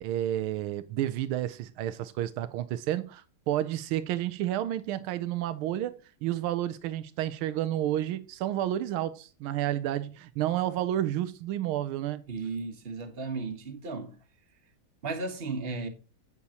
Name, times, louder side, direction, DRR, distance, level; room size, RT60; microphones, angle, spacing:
voice 1, 0.0-12.2, right 12 dB, 90° right, 1.5 m, -31 dB
voice 2, 12.3-14.2 15.0-15.9, right 3 dB, 35° right, 1.3 m, -35 dB
8.6 x 8.3 x 2.8 m
omnidirectional pair, 2.3 m